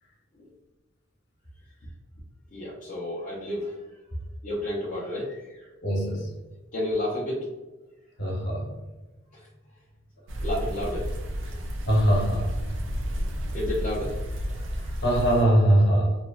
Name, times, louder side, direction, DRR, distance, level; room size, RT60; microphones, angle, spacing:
voice 1, 2.5-3.8 4.4-5.7 6.7-7.5 9.3-9.5 10.4-11.2 11.5-11.6 13.5-14.2, left 1 dB, 40° left, -7 dB, 0.4 m, -31 dB
voice 2, 5.8-6.3 8.2-8.7 11.9-12.6 14.5-16.2, right 1 dB, 60° left, -3 dB, 0.9 m, -22 dB
sound 1, 10.3-15.4, equal, 70° right, 0.4 m, -31 dB
3.0 x 2.1 x 2.2 m, 1.1 s
head